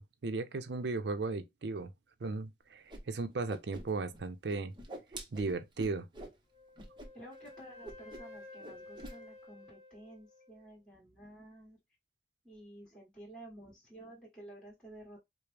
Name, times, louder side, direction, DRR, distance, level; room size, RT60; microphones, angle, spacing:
voice 1, 0.0-1.9 2.2-4.7 5.3-6.1, right 3 dB, 75° right, 0.5 m, -36 dB
Whoosh swoosh swish, 2.9-3.0 3.3-4.2 4.5-6.4 6.8-7.1 7.3-7.5 7.8-8.4 8.6-9.2, right 1 dB, 25° right, 0.7 m, -46 dB
Wind instrument woodwind instrument, 6.5-10.7, left 2 dB, 20° left, 1.1 m, -53 dB
voice 2, 7.1-11.8 12.4-15.2, right 1 dB, 5° left, 1.5 m, -52 dB
4.8 x 2.0 x 3.3 m
head